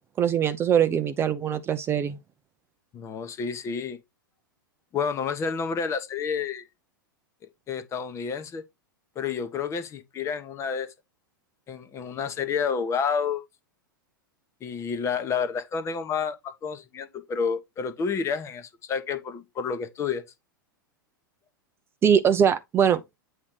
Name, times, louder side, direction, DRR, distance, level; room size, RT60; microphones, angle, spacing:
voice 1, 0.2-2.2 22.0-23.0, right 8 dB, 20° right, 0.6 m, -22 dB
voice 2, 2.9-4.0 4.9-6.7 7.7-8.6 9.2-10.9 11.7-13.4 14.6-20.2, left 6 dB, 25° left, 1.0 m, -29 dB
8.5 x 3.2 x 4.0 m
figure-of-eight pair, 95°, 11 cm